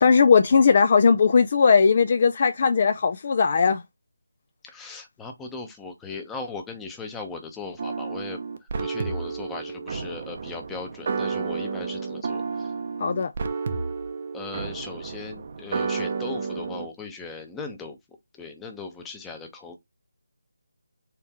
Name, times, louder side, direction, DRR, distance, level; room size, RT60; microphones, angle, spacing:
voice 1, 0.0-3.8 13.0-13.3, left 5 dB, 40° left, 0.4 m, -18 dB
voice 2, 4.6-8.4 8.8-12.7 14.3-18.0 18.4-19.8, left 4 dB, 5° left, 0.8 m, -38 dB
sound 1, 7.8-16.9, right 5 dB, 40° right, 0.7 m, -31 dB
4.5 x 3.2 x 3.5 m
figure-of-eight pair, 160°, 0 cm